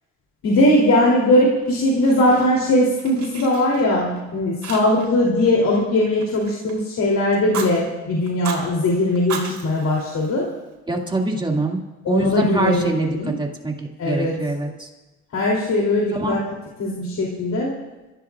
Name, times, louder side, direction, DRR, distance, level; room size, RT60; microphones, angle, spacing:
voice 1, 0.4-10.5 12.0-13.3 14.0-14.4 15.3-16.4 16.8-17.7, left 1 dB, 65° left, -3 dB, 3.2 m, -19 dB
Fire, 1.6-2.7 3.0-4.2 4.6-5.2 5.4-6.9 7.3-7.7 8.3-8.6 9.1-10.7, right 6 dB, 70° right, 3.6 m, -35 dB
voice 2, 10.9-11.8 12.1-14.9 16.1-16.4, right 2 dB, 15° right, 0 dB, 2.3 m, -24 dB
26.0 x 15.0 x 2.5 m, 1.1 s
cardioid pair, 90°, 30 cm